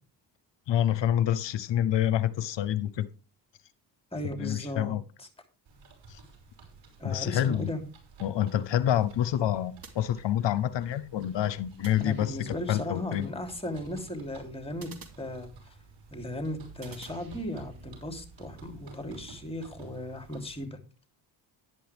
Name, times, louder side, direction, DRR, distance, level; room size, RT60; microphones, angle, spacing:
voice 1, 0.7-3.1 4.4-5.0 6.1-6.2 7.0-7.7 8.2-13.3, left 11 dB, 60° left, 0.8 m, -27 dB
voice 2, 4.1-5.3 7.0-7.8 12.0-14.9 15.2-15.5 16.1-20.8, left 1 dB, 10° left, 3.2 m, -36 dB
sound 1, 5.6-20.6, right 5 dB, 60° right, 5.5 m, -52 dB
sound 2, 9.8-10.7 11.8-12.7 14.8-15.9 16.8-17.9, right 5 dB, 45° right, 2.8 m, -52 dB
11.0 x 11.0 x 3.5 m
supercardioid pair, 60°, 48 cm